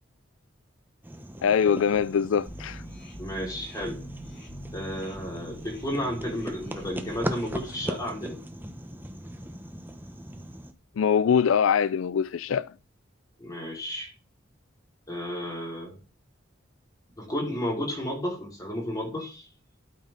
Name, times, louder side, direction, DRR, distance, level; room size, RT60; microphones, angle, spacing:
sound 1, 1.0-10.7, right 1 dB, 10° right, 1.0 m, -39 dB
voice 1, 1.4-2.8 11.0-12.7, left 7 dB, 85° left, 0.4 m, -23 dB
sound 2, 2.5-7.8, equal, 60° left, 6.8 m, -45 dB
voice 2, 3.2-4.0 4.7-8.4 13.4-14.1 15.1-16.0 17.2-19.5, equal, 20° left, 4.8 m, -32 dB
12.5 x 6.5 x 3.9 m
head